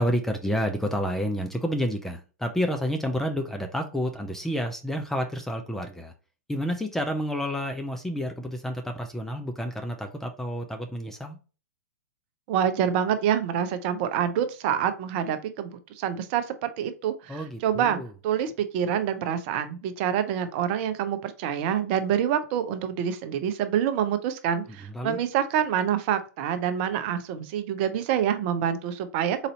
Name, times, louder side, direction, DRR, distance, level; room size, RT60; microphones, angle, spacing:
voice 1, 0.0-6.1 6.5-11.4 17.3-18.1 24.7-25.2, equal, 5° left, 0.5 m, -29 dB
voice 2, 12.5-15.7 16.0-29.4, right 9 dB, 40° right, 0.6 m, -26 dB
4.0 x 2.7 x 4.2 m
figure-of-eight pair, 115°, 9 cm